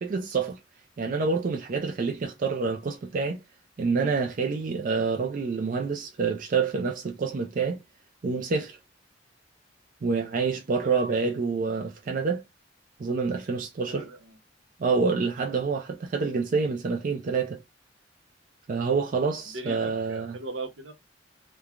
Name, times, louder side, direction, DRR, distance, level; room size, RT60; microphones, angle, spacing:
voice 1, 0.0-0.6 1.0-3.4 3.8-7.8 8.2-8.8 10.0-12.4 13.0-14.0 14.8-17.6 18.7-20.4, right 4 dB, 45° right, 0.4 m, -27 dB
voice 2, 10.8-11.2 13.9-14.4 15.5-15.8 19.5-20.9, right 3 dB, 80° right, 0.8 m, -40 dB
3.0 x 2.2 x 2.4 m
head